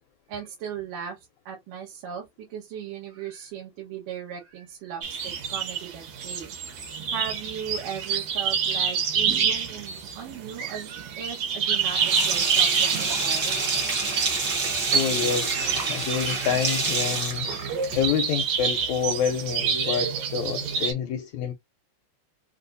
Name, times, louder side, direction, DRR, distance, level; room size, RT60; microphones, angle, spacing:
voice 1, 0.3-2.2 2.5-6.5 7.1-13.6, right 8 dB, 90° right, 2.9 m, -37 dB
sound 1, 5.0-20.9, right 6 dB, 65° right, 2.3 m, -28 dB
Sink (filling or washing), 11.8-18.2, right 4 dB, 50° right, 1.2 m, -28 dB
voice 2, 14.9-17.5 17.9-21.5, left 8 dB, 75° left, 1.7 m, -28 dB
6.6 x 2.3 x 2.6 m
omnidirectional pair, 3.7 m